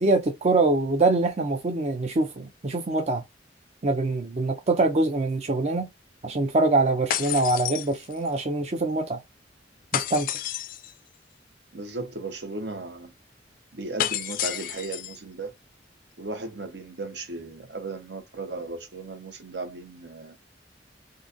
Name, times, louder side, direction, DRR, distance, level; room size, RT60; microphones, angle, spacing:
voice 1, 0.0-3.2 3.8-5.9 6.2-9.2 9.9-10.3, right 2 dB, 40° right, 0.5 m, -24 dB
sound 1, 7.1-8.4 9.9-10.9 14.0-15.2, left 11 dB, 50° left, 0.3 m, -30 dB
voice 2, 11.7-13.1 13.7-15.5 16.2-20.4, right 3 dB, 70° right, 0.9 m, -36 dB
3.9 x 2.5 x 2.6 m
head